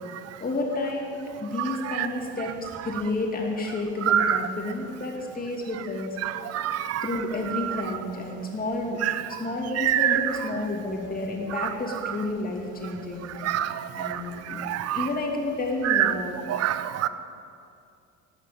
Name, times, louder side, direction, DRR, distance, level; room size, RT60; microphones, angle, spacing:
voice 1, 0.4-6.2 7.0-9.0 9.3-13.5 14.0-14.6 14.9-16.3, left 2 dB, 30° left, 0 dB, 2.5 m, -30 dB
voice 2, 1.6-2.1 4.1-4.4 6.2-7.1 7.5-7.8 9.0-9.4 9.8-10.3 11.6-11.7 13.4-15.1 15.8-16.1 16.5-17.1, right 11 dB, 50° right, 13 dB, 0.6 m, -26 dB
12.5 x 5.8 x 9.0 m, 2.4 s
supercardioid pair, 90°, 31 cm